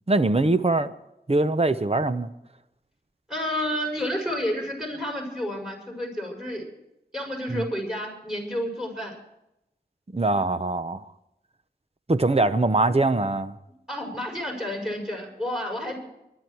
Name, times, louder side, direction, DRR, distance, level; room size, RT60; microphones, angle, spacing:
voice 1, 0.1-0.9 1.3-2.3 7.5-7.7 10.1-11.0 12.1-13.6, right 2 dB, 35° right, 11 dB, 0.9 m, -22 dB
voice 2, 3.3-6.7 7.1-9.1 13.9-16.0, equal, 5° right, 0 dB, 6.9 m, -30 dB
23.5 x 11.5 x 4.7 m, 0.85 s
wide cardioid pair, 50°, 17 cm